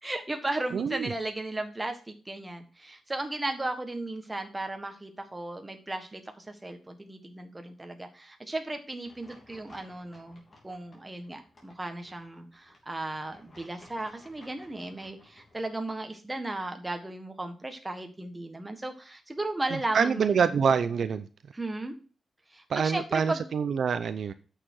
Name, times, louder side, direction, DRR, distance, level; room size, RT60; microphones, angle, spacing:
voice 1, 0.0-20.6 21.5-21.9 22.5-23.5, right 2 dB, 15° right, 6 dB, 1.5 m, -35 dB
voice 2, 0.7-1.1 19.9-21.3 22.7-24.3, right 6 dB, 65° right, 12 dB, 0.5 m, -26 dB
sound 1, 9.0-15.6, left 2 dB, 35° left, 3.2 m, -57 dB
8.8 x 6.6 x 4.7 m, 0.37 s
wide cardioid pair, 120°, 0 cm